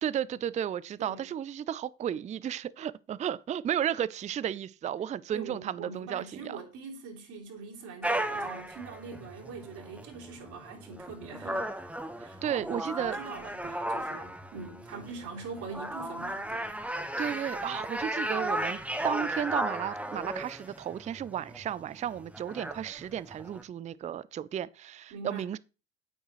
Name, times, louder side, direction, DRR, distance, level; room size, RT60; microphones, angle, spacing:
voice 1, 0.0-6.6 12.4-13.2 17.2-25.6, right 9 dB, 20° right, 0.4 m, -33 dB
voice 2, 1.0-1.3 5.3-11.7 12.2-16.7 25.1-25.5, right 4 dB, 55° right, 3.2 m, -43 dB
sound 1, 8.0-23.6, right 1 dB, 5° right, 1.2 m, -35 dB
9.0 x 8.8 x 3.1 m
hypercardioid pair, 60°, 35 cm